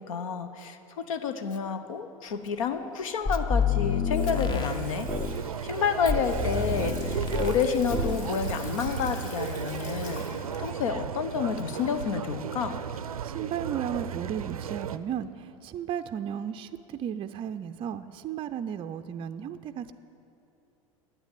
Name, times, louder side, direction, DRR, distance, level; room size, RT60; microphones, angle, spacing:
voice 1, 0.0-5.1 5.6-10.3 10.6-12.8, left 6 dB, 65° left, 10 dB, 0.9 m, -30 dB
Water tap faucet / Sink (filling or washing), 2.3-14.0, left 2 dB, 40° left, 2.7 m, -47 dB
sound 1, 3.3-5.4 6.1-7.6 7.9-8.2, left 5 dB, 25° left, 0.9 m, -28 dB
sound 2, 4.3-15.0, right 8 dB, 85° right, 0.5 m, -34 dB
voice 2, 13.2-19.9, right 9 dB, 30° right, 9 dB, 0.4 m, -34 dB
10.5 x 8.7 x 9.4 m, 2.7 s
hypercardioid pair, 85°, 18 cm